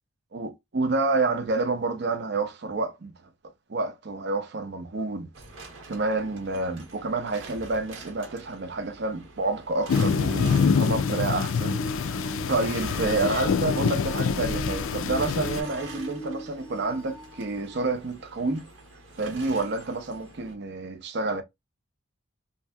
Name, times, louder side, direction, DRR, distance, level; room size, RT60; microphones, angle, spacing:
voice 1, 0.3-3.1 3.7-18.7 19.2-21.4, right 3 dB, 60° right, 0.6 m, -29 dB
sound 1, 5.3-20.5, right 3 dB, 80° right, 1.0 m, -46 dB
sound 2, 9.9-15.6, left 6 dB, 85° left, 0.4 m, -25 dB
sound 3, 10.3-18.0 18.7-18.8 19.8-19.9, right 2 dB, 5° left, 0.6 m, -40 dB
2.9 x 2.6 x 2.2 m
head